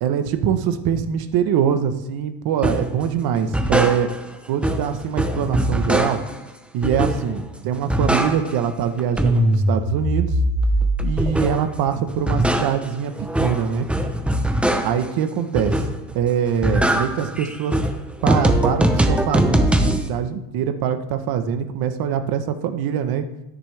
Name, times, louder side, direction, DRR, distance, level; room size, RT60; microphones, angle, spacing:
voice 1, 0.0-4.1 4.5-6.2 6.7-10.3 11.0-13.1 13.4-13.9 14.8-15.8 16.1-17.8 18.2-23.2, right 8 dB, 50° right, 9 dB, 1.1 m, -23 dB
sound 1, 2.6-2.9 3.4-4.3 4.6-6.4 6.8-7.4 7.7-8.7 9.0-11.7 12.1-15.1 15.5-16.1 16.5-20.1, right 1 dB, 5° right, 0.8 m, -21 dB
12.0 x 10.0 x 3.4 m, 0.91 s
cardioid pair, 135°, 46 cm